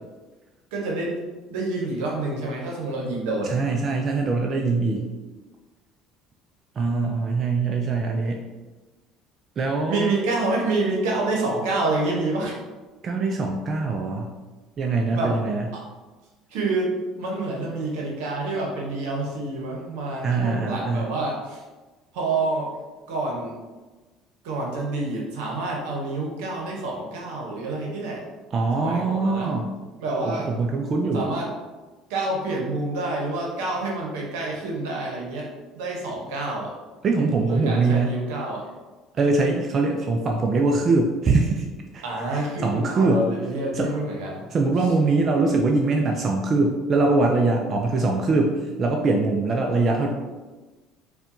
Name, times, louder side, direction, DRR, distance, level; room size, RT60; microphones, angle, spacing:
voice 1, 0.7-1.2 1.5-3.5 9.9-12.6 15.1-15.4 15.7-15.8 16.5-21.6 22.1-22.7 23.1-23.6 24.4-28.3 28.8-29.5 30.0-30.5 31.1-31.5 32.1-36.7 37.4-38.7 42.0-44.4, right 2 dB, 85° right, -1 dB, 0.9 m, -28 dB
voice 2, 3.4-5.1 6.8-8.4 9.6-10.1 13.0-14.4 14.8-15.7 20.2-21.1 28.5-29.7 30.3-31.3 37.0-38.2 39.1-41.7 41.9-42.0 42.3-43.2 43.7-43.9 44.5-50.1, right 3 dB, 45° right, 2 dB, 0.4 m, -22 dB
4.3 x 2.3 x 2.6 m, 1.2 s
supercardioid pair, 85°, 0 cm